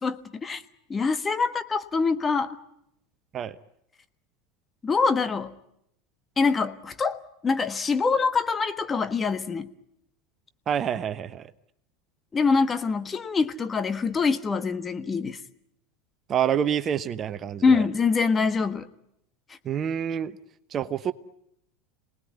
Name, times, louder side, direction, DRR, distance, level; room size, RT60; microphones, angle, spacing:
voice 1, 0.0-0.6 0.9-2.6 4.8-5.5 6.4-9.7 12.3-15.4 17.6-18.9 19.5-19.6, left 4 dB, 25° left, 1.4 m, -24 dB
voice 2, 10.7-11.5 16.3-17.8 19.6-20.3 20.7-21.1, right 9 dB, 35° right, 1.0 m, -27 dB
27.0 x 19.5 x 9.5 m
hypercardioid pair, 85°, 0 cm